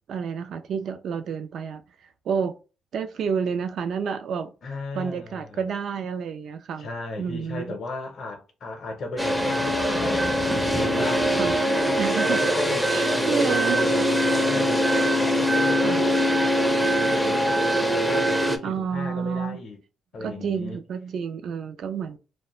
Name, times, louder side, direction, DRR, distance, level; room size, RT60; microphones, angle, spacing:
voice 1, 0.1-1.8 2.3-2.5 2.9-4.5 4.9-6.9 7.2-7.7 11.4-11.6 12.0-12.4 12.9-13.8 15.8-16.0 18.6-19.6 20.2-22.2, right 6 dB, 65° right, 0.4 m, -29 dB
voice 2, 4.6-5.6 6.8-11.3 11.8-16.2 16.4-19.8 20.1-20.8, left 2 dB, 55° left, 0.6 m, -36 dB
sound 1, 9.2-18.6, equal, 5° right, 0.4 m, -22 dB
2.3 x 2.1 x 2.9 m
cardioid pair, 90°, 0 cm